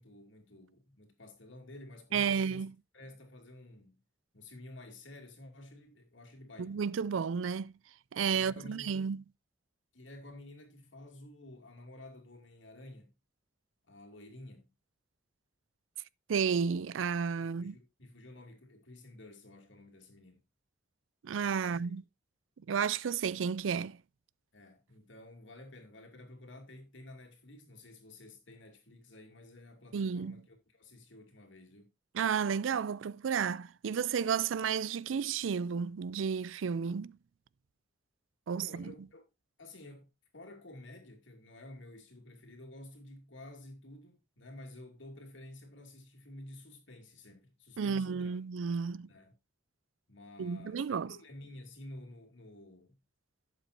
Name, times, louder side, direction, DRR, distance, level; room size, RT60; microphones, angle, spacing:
voice 1, 0.0-2.6 2.9-4.0 4.3-6.8 8.3-9.1 9.9-13.1 13.9-14.7 17.4-20.4 21.6-21.9 24.5-31.9 38.5-39.2 39.6-48.4 49.1-49.3 50.1-53.0, left 1 dB, 70° left, 2.6 m, -51 dB
voice 2, 2.1-2.7 6.6-7.7 8.1-9.2 16.3-17.7 21.2-22.0 22.7-24.0 29.9-30.4 32.1-37.2 38.5-38.9 47.8-49.1 50.4-51.1, right 6 dB, 85° right, 0.4 m, -32 dB
12.0 x 8.2 x 2.6 m
head